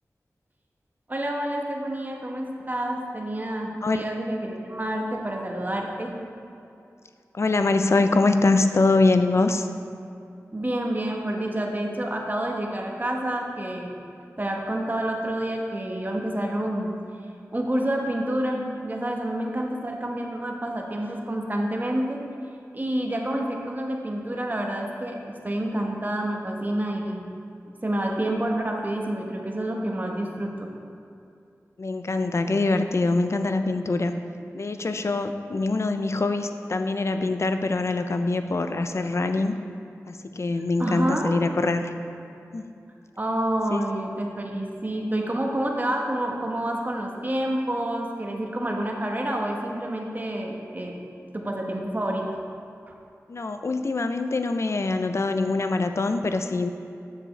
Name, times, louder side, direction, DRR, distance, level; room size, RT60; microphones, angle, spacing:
voice 1, 1.1-6.1 10.5-13.9 14.4-16.9 17.5-22.2 22.7-25.2 25.4-27.2 27.8-30.7 40.8-41.4 43.2-50.9 51.3-52.3 52.9-53.0, right 1 dB, 30° right, 0 dB, 1.0 m, -28 dB
voice 2, 7.3-9.7 31.8-34.1 34.5-39.6 40.1-41.9 42.5-42.7 43.7-44.0 53.3-56.7, left 3 dB, 50° left, 8 dB, 0.4 m, -24 dB
7.5 x 6.8 x 3.2 m, 2.6 s
cardioid pair, 45°, 6 cm